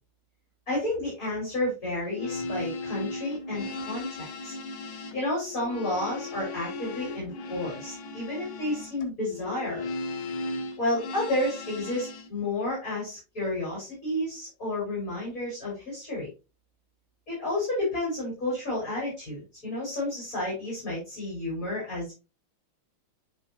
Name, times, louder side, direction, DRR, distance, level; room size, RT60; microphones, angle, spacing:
voice 1, 0.7-4.5 5.1-9.9 10.8-16.3 17.3-22.1, left 1 dB, 40° left, -6 dB, 5.2 m, -31 dB
sound 1, 2.0-12.3, left 3 dB, 75° left, 1.8 m, -37 dB
10.0 x 4.4 x 2.8 m, 0.28 s
omnidirectional pair, 2.3 m